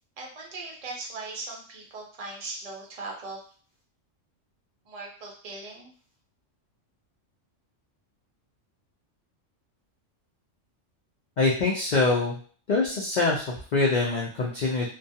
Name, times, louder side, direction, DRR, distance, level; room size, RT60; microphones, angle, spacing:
voice 1, 0.2-3.4 4.9-5.9, right 3 dB, 40° right, -2 dB, 0.6 m, -39 dB
voice 2, 11.4-12.4 12.7-14.9, left 3 dB, 80° left, -3 dB, 0.4 m, -24 dB
2.3 x 2.2 x 2.7 m, 0.43 s
omnidirectional pair, 1.3 m